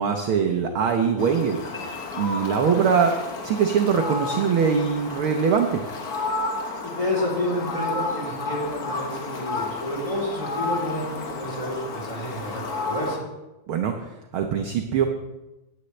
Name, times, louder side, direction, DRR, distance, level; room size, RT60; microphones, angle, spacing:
voice 1, 0.0-3.1 3.4-5.8 13.7-15.1, right 6 dB, 85° right, 4 dB, 1.1 m, -23 dB
Fowl, 1.2-13.2, left 3 dB, 65° left, 0.9 m, -31 dB
sound 1, 1.7-3.3, left 4 dB, 25° left, 1.6 m, -44 dB
voice 2, 6.8-13.2, left 1 dB, 10° left, -4 dB, 2.9 m, -30 dB
14.5 x 10.5 x 3.2 m, 1.0 s
omnidirectional pair, 3.4 m